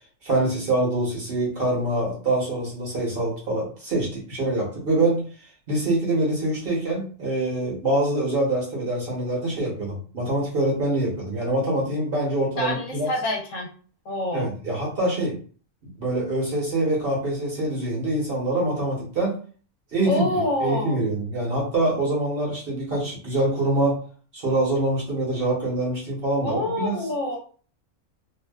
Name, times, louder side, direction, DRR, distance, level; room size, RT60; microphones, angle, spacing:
voice 1, 0.2-5.3 5.7-13.1 14.3-15.4 16.0-19.4 19.9-20.3 20.6-24.0 24.3-27.0, right 1 dB, 50° right, -4 dB, 0.9 m, -25 dB
voice 2, 12.6-13.7 14.0-14.5 20.0-21.0 26.4-27.4, left 1 dB, 70° left, 0 dB, 0.9 m, -26 dB
2.6 x 2.1 x 2.2 m, 0.42 s
omnidirectional pair, 1.4 m